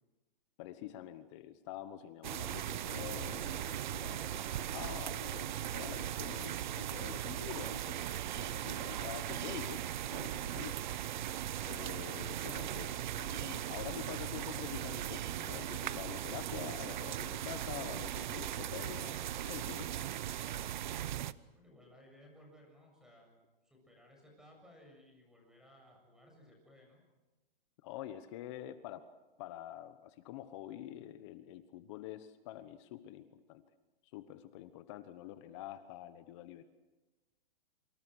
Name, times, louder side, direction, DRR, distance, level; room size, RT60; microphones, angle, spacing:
voice 1, 0.6-10.8 11.6-19.2 19.4-20.0 27.8-29.1 29.4-33.6 34.1-36.6, left 12 dB, 30° left, 12 dB, 1.1 m, -47 dB
sound 1, 2.2-21.3, right 11 dB, 55° right, 0.9 m, -38 dB
voice 2, 21.5-23.3 23.6-27.0, left 1 dB, ahead, 1 dB, 7.3 m, -60 dB
27.0 x 25.5 x 6.4 m, 1.1 s
hypercardioid pair, 155°, 29 cm